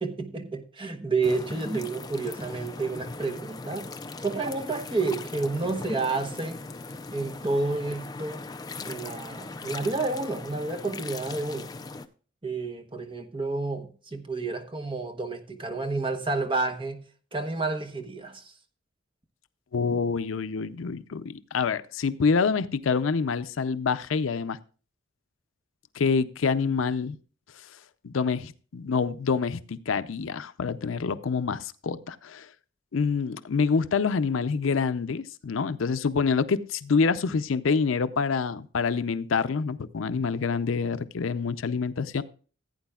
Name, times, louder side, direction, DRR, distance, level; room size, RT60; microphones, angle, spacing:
voice 1, 0.0-3.9 4.2-6.6 7.1-8.4 8.8-11.7 12.4-17.0 17.3-18.4, right 3 dB, 25° right, 0.9 m, -30 dB
sound 1, 1.2-12.1, left 3 dB, 20° left, 0.4 m, -39 dB
voice 2, 19.7-24.6 26.0-27.2 28.0-32.5 32.9-42.2, left 5 dB, 80° left, 0.5 m, -26 dB
15.5 x 8.9 x 2.3 m
head